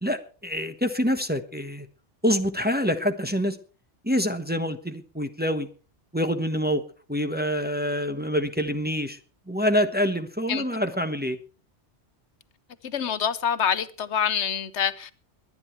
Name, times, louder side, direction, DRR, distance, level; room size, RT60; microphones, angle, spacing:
voice 1, 0.0-1.9 2.2-3.6 4.0-5.7 6.1-6.8 7.1-9.2 9.5-11.4, equal, 10° right, 1.1 m, -26 dB
voice 2, 12.8-15.1, left 8 dB, 80° left, 1.2 m, -26 dB
21.5 x 9.8 x 4.5 m
omnidirectional pair, 1.2 m